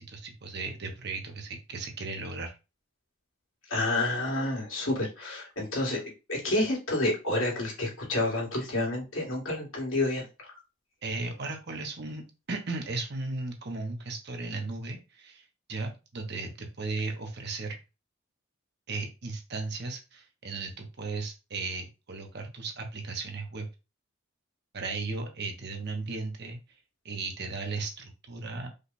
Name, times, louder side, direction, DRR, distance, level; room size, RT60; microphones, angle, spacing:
voice 1, 0.0-2.6 11.0-12.2 12.5-17.8 18.9-23.7 24.7-26.6 27.0-28.7, right 3 dB, 55° right, 3 dB, 1.1 m, -36 dB
voice 2, 3.7-6.0 6.3-10.5, left 2 dB, 80° left, -3 dB, 2.3 m, -29 dB
5.1 x 2.4 x 4.1 m, 0.28 s
head